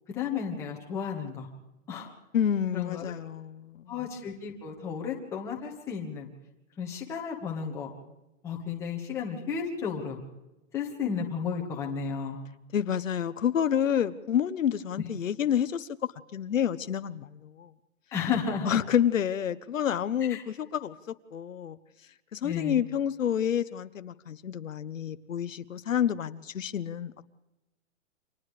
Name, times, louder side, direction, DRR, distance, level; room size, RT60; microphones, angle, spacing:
voice 1, 0.1-1.5 1.9-2.1 2.7-3.1 3.9-6.3 6.8-7.9 8.4-10.2 10.7-12.4 18.1-18.8 20.3-20.4 22.4-22.8, left 6 dB, 5° left, -1 dB, 1.6 m, -33 dB
voice 2, 2.3-3.9 12.7-15.9 16.3-17.7 18.7-20.9 21.3-21.8 22.3-27.2, left 9 dB, 75° left, 12 dB, 1.1 m, -29 dB
29.5 x 26.0 x 3.3 m, 0.97 s
hypercardioid pair, 175°, 40 cm